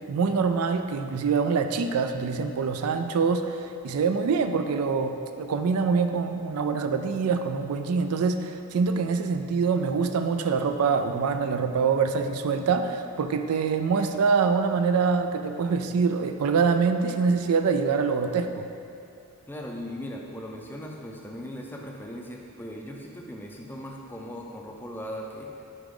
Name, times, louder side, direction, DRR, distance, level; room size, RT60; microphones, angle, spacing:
voice 1, 0.1-18.7, right 5 dB, 90° right, 7 dB, 0.4 m, -25 dB
voice 2, 19.5-25.6, equal, 10° left, 0 dB, 0.4 m, -38 dB
6.8 x 4.9 x 3.7 m, 2.6 s
head